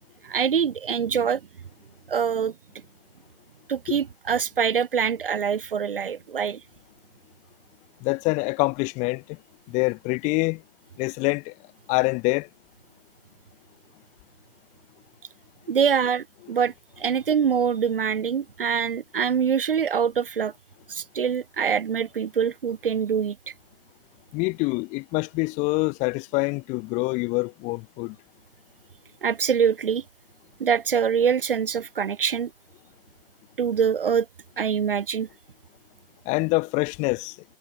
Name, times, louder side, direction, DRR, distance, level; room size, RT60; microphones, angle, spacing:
voice 1, 0.2-1.4 2.1-2.5 3.7-6.6 15.7-20.5 20.9-23.4 29.2-30.0 30.6-32.5 33.6-34.3 34.6-35.3, right 7 dB, 60° right, 0.9 m, -24 dB
voice 2, 8.0-9.2 9.7-10.6 11.0-11.5 11.9-12.5 24.3-28.2 36.3-37.3, left 27 dB, 25° left, 2.5 m, -25 dB
figure-of-eight pair, 125°, 31 cm